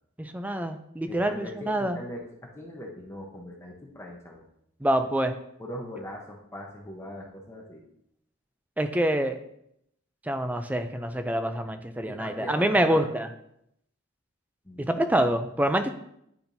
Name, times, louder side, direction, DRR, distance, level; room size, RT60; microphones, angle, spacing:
voice 1, 0.2-2.0 4.8-5.3 8.8-9.4 10.3-13.3 14.8-15.9, right 1 dB, 10° right, 7 dB, 0.4 m, -26 dB
voice 2, 1.1-2.2 2.6-4.4 5.6-7.8 12.0-13.1 14.6-15.0, left 1 dB, 15° left, -2 dB, 0.9 m, -40 dB
10.0 x 4.3 x 2.7 m, 0.75 s
head